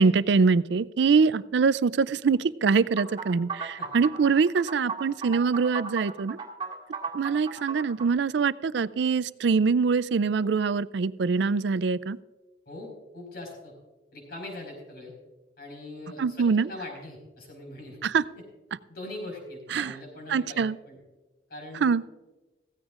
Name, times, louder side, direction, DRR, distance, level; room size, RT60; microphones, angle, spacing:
voice 1, 0.0-6.4 7.1-12.2 16.2-16.7 18.0-18.2 19.7-19.9 20.3-20.7 21.8-22.0, right 5 dB, 70° right, 17 dB, 0.4 m, -24 dB
sound 1, 3.0-8.1, right 5 dB, 25° right, 2.0 m, -36 dB
voice 2, 12.6-13.7 14.1-15.1 15.6-18.0 18.3-18.4 18.9-21.0 21.5-22.1, left 1 dB, 55° left, 1 dB, 5.0 m, -41 dB
15.5 x 15.5 x 2.5 m, 1.1 s
head